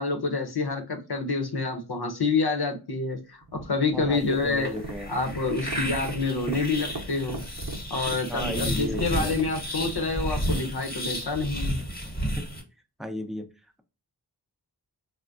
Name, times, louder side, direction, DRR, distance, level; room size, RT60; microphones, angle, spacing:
voice 1, 0.0-4.7 5.1-7.4 7.9-11.8, left 3 dB, 75° left, 0.8 m, -28 dB
sound 1, 3.4-10.1, right 2 dB, 55° right, 0.8 m, -39 dB
voice 2, 3.9-5.1 8.3-9.3 12.4-12.5 13.0-13.4, left 1 dB, ahead, 0.5 m, -34 dB
sound 2, 4.1-12.6, equal, 25° left, 1.1 m, -32 dB
3.4 x 2.1 x 2.5 m
wide cardioid pair, 45°, 39 cm